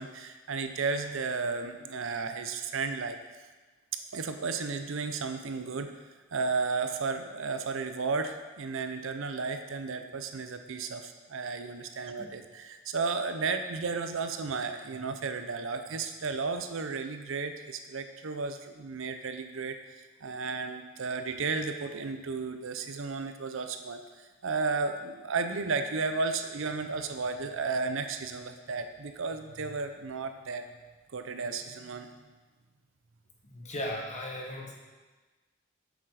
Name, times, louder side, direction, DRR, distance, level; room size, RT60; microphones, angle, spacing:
voice 1, 0.0-3.2 3.9-5.9 6.3-19.8 20.2-30.6 31.1-32.1, right 4 dB, 70° right, 8 dB, 0.6 m, -33 dB
voice 2, 33.4-34.7, left 1 dB, 35° left, -1 dB, 1.5 m, -37 dB
7.3 x 7.2 x 4.9 m, 1.3 s
head